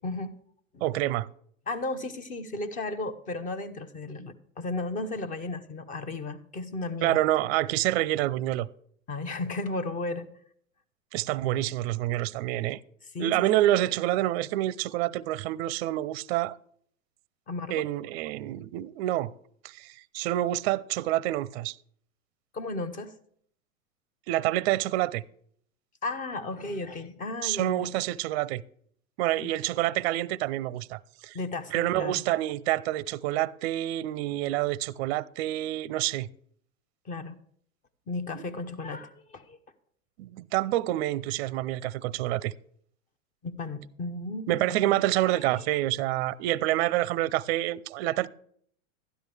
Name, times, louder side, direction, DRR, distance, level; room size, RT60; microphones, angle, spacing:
voice 1, 0.0-0.3 0.7-0.8 1.7-7.2 9.1-10.3 13.1-13.9 17.5-17.9 22.5-23.1 26.0-27.9 29.4-29.5 31.3-32.2 37.0-37.4 38.1-39.6 43.4-44.9 45.2-45.4, left 2 dB, 20° left, 0.8 m, -34 dB
voice 2, 0.8-1.3 7.0-8.7 11.1-12.8 13.2-16.6 17.7-19.3 19.6-21.8 24.3-25.2 27.4-28.6 29.2-31.4 31.7-36.3 38.3-38.4 40.2-42.5 44.5-48.3, right 15 dB, 50° right, 0.5 m, -27 dB
12.5 x 10.5 x 3.4 m
hypercardioid pair, 115°, 41 cm